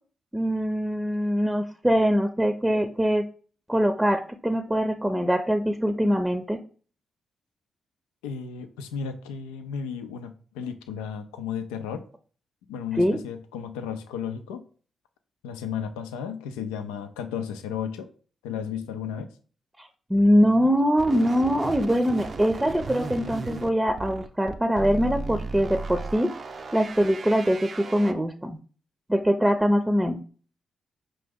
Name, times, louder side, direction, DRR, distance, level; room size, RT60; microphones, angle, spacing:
voice 1, 0.3-3.2 3.7-6.6 13.0-13.2 19.8-26.3 26.7-28.6 29.1-30.2, equal, 15° right, 0.6 m, -23 dB
voice 2, 8.2-12.0 12.7-14.6 15.4-18.1 18.4-19.3, left 7 dB, 90° left, 0.4 m, -34 dB
sound 1, 21.0-28.1, right 3 dB, 55° right, 0.5 m, -36 dB
5.0 x 3.0 x 3.5 m
hypercardioid pair, 40°, 0 cm